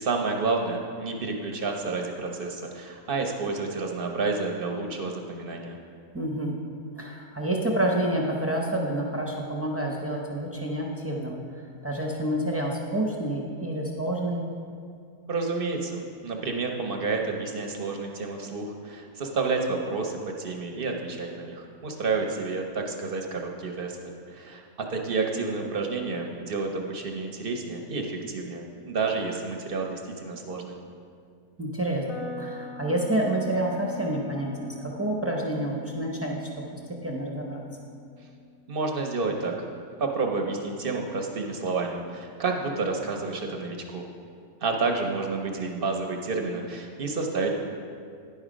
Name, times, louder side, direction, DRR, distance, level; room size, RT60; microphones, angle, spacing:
voice 1, 0.0-5.8 15.3-24.0 24.3-24.6 24.9-30.8 38.7-39.7 40.0-44.1 44.6-47.5, right 4 dB, 50° right, 2 dB, 0.7 m, -30 dB
voice 2, 6.1-6.5 7.0-11.4 11.8-14.4 31.6-36.4 36.9-37.6, right 1 dB, 15° right, -2 dB, 0.5 m, -28 dB
sound 1, 32.1-40.0, left 3 dB, 60° left, 1.7 m, -44 dB
10.0 x 5.5 x 5.0 m, 2.3 s
omnidirectional pair, 1.6 m